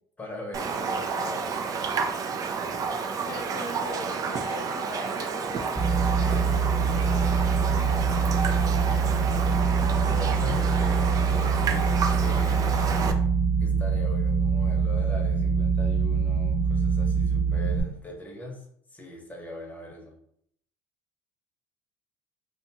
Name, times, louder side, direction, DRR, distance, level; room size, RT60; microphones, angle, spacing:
voice 1, 0.2-2.0 10.1-12.9 13.6-18.6 18.9-20.1, left 2 dB, 15° left, -1 dB, 0.8 m, -41 dB
Raindrop, 0.5-13.1, right 5 dB, 40° right, 0.4 m, -30 dB
voice 2, 3.3-5.8 6.2-7.5, left 2 dB, 50° left, 1 dB, 0.7 m, -41 dB
sound 1, 5.8-17.8, right 5 dB, 15° right, 0.8 m, -24 dB
2.5 x 2.2 x 2.8 m, 0.69 s
supercardioid pair, 90°, 10 cm